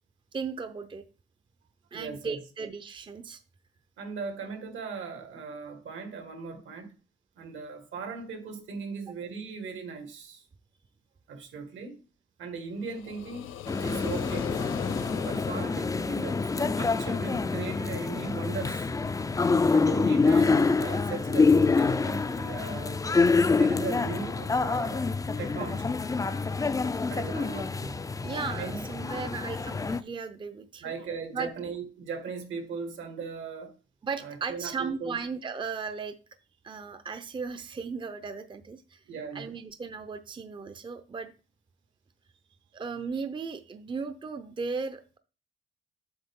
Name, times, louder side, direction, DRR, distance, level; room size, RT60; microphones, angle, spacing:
voice 1, 0.3-1.0 1.9-3.4 23.7-23.8 27.3-27.5 28.2-31.1 31.3-31.5 34.0-36.2 36.6-39.0 39.3-41.3 42.7-45.2, right 5 dB, 25° right, 0.6 m, -36 dB
voice 2, 1.9-2.4 4.0-6.9 7.4-10.5 11.3-12.0 12.4-14.5 15.2-18.9 19.7-23.0 23.5-25.1 25.4-26.0 27.1-28.1 28.5-28.8 30.8-33.7 34.2-35.2 39.1-39.6, right 5 dB, 75° right, 1.9 m, -38 dB
sound 1, 12.8-16.8, left 11 dB, 90° left, 0.6 m, -40 dB
sound 2, 13.7-30.0, left 4 dB, 15° left, 0.4 m, -26 dB
8.0 x 6.2 x 3.7 m
cardioid pair, 90°, 20 cm